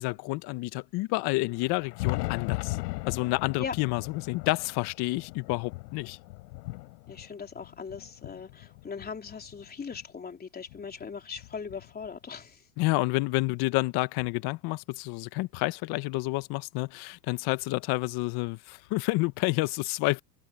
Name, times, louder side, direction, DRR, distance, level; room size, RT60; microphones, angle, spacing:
voice 1, 0.0-2.8 3.1-6.2 12.8-20.2, left 22 dB, 50° left, 1.1 m, -29 dB
Thunder, 1.5-10.0 10.7-12.4 13.5-13.6 14.2-14.3 16.2-16.3 17.6-17.7 19.3-19.4, left 23 dB, 75° left, 5.9 m, -38 dB
voice 2, 7.1-12.6, left 6 dB, 20° left, 3.7 m, -39 dB
open air
supercardioid pair, 115°, 49 cm